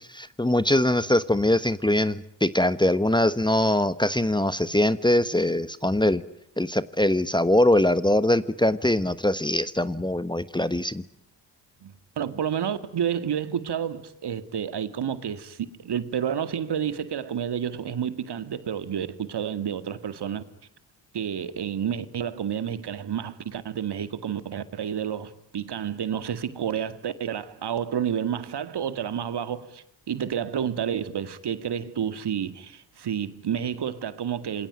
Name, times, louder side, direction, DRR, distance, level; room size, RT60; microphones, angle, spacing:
voice 1, 0.2-6.2 6.6-11.0, left 1 dB, 10° left, 1.3 m, -22 dB
voice 2, 11.8-20.4 21.1-34.7, right 8 dB, 55° right, 2.2 m, -30 dB
27.0 x 21.0 x 9.2 m
hypercardioid pair, 45°, 49 cm